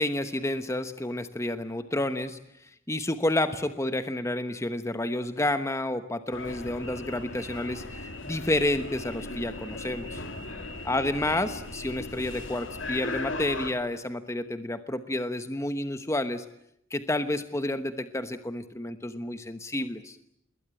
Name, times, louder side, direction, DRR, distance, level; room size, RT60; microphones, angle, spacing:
voice 1, 0.0-10.2 10.8-16.4 16.9-20.2, left 1 dB, 15° left, 9 dB, 1.1 m, -30 dB
sound 1, 6.3-13.7, left 2 dB, 65° left, 3.5 m, -38 dB
28.0 x 21.0 x 8.9 m, 0.76 s
head